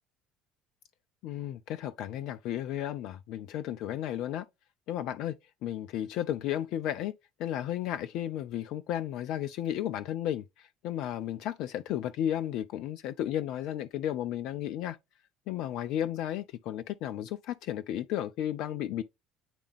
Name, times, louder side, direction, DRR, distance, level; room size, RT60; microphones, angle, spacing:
voice 1, 1.2-4.5 4.9-5.4 5.6-7.1 7.4-15.0 15.5-19.0, left 11 dB, 60° left, 0.4 m, -33 dB
9.0 x 3.4 x 3.3 m
figure-of-eight pair, 60°, 0 cm